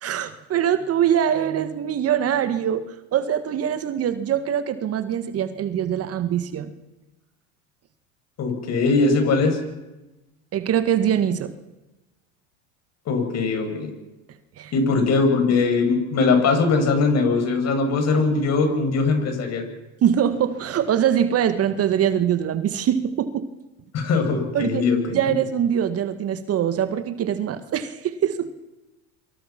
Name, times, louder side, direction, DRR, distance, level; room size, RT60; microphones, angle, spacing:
voice 1, 0.0-6.7 10.5-11.5 14.6-14.7 20.0-23.5 24.5-24.8 25.1-28.5, right 9 dB, 40° right, 11 dB, 1.8 m, -23 dB
voice 2, 8.4-9.6 13.1-13.9 14.7-19.7 23.9-25.2, left 4 dB, 45° left, 5 dB, 7.3 m, -21 dB
27.0 x 25.0 x 6.0 m, 1.0 s
supercardioid pair, 100°, 36 cm